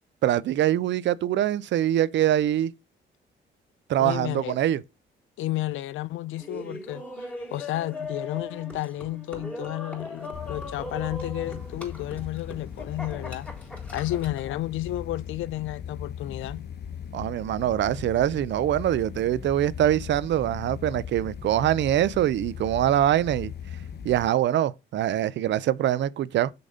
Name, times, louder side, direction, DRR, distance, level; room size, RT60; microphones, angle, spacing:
voice 1, 0.2-2.7 3.9-4.8 17.1-23.5 24.0-26.5, right 12 dB, 65° right, 0.5 m, -24 dB
voice 2, 4.0-4.6 5.4-7.0 7.5-13.5 13.9-16.7, left 15 dB, 80° left, 0.5 m, -32 dB
Laughter, 6.4-14.5, left 2 dB, 5° left, 3.7 m, -39 dB
sound 1, 10.3-24.3, left 8 dB, 60° left, 1.0 m, -38 dB
6.7 x 4.0 x 5.0 m
cardioid pair, 90°, 20 cm